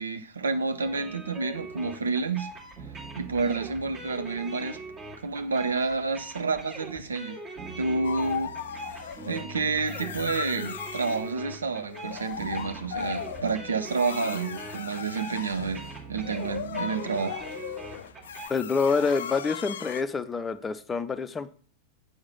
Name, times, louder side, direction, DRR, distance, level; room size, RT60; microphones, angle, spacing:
voice 1, 0.0-2.5 3.2-4.8 5.2-7.4 7.8-8.5 9.3-17.4, right 4 dB, 70° right, 0.7 m, -29 dB
sound 1, 0.8-18.5, right 2 dB, 35° right, 2.5 m, -42 dB
sound 2, 8.0-9.5 9.9-11.3 11.8-20.0, left 9 dB, 65° left, 0.4 m, -37 dB
voice 2, 18.5-21.5, left 4 dB, 15° left, 0.6 m, -27 dB
7.9 x 4.8 x 5.6 m
figure-of-eight pair, 90°, 0 cm